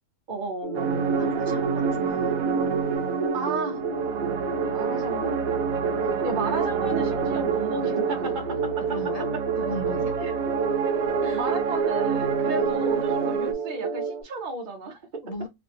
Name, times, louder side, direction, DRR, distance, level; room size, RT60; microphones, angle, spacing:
voice 1, 0.3-1.0 3.3-3.8 4.7-5.4 6.2-8.9 10.2-10.3 11.3-15.2, right 3 dB, 50° right, 0.6 m, -33 dB
sound 1, 0.6-14.2, right 5 dB, 25° right, 1.0 m, -30 dB
sound 2, 0.7-13.5, right 6 dB, 90° right, 1.0 m, -28 dB
voice 2, 1.2-2.3 6.0-6.2 8.9-9.3 9.6-10.1 11.2-11.4 12.4-12.7 15.2-15.5, left 1 dB, 65° left, 0.3 m, -37 dB
3.1 x 2.5 x 2.7 m
omnidirectional pair, 1.4 m